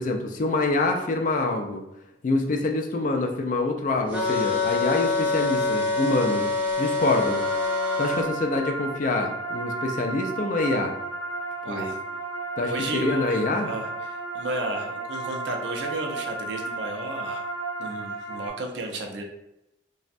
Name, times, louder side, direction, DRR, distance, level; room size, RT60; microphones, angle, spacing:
voice 1, 0.0-1.8 2.2-6.5 6.8-7.5 8.0-11.0 11.7-11.9 12.6-13.7, left 2 dB, 45° left, 3 dB, 0.3 m, -26 dB
sound 1, 4.1-8.2, left 3 dB, 10° right, 0.5 m, -25 dB
sound 2, 7.0-18.5, right 2 dB, 15° left, 0.8 m, -33 dB
voice 2, 11.6-12.0 12.6-17.5 17.8-19.2, right 2 dB, 70° right, 2 dB, 0.4 m, -33 dB
3.3 x 2.0 x 2.5 m, 0.86 s
head